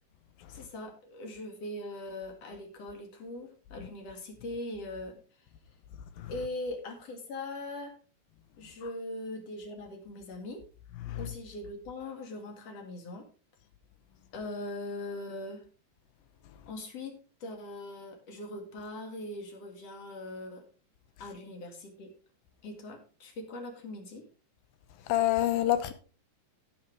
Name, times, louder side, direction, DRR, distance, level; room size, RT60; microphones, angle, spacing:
voice 1, 0.5-5.1 6.3-7.9 8.6-10.6 11.2-13.3 14.3-15.6 16.7-17.1 17.4-20.6 21.2-22.1 22.6-24.2, left 2 dB, 45° left, 2.6 m, -41 dB
voice 2, 25.1-25.9, left 13 dB, 75° left, 2.3 m, -26 dB
16.5 x 6.5 x 3.3 m
omnidirectional pair, 4.8 m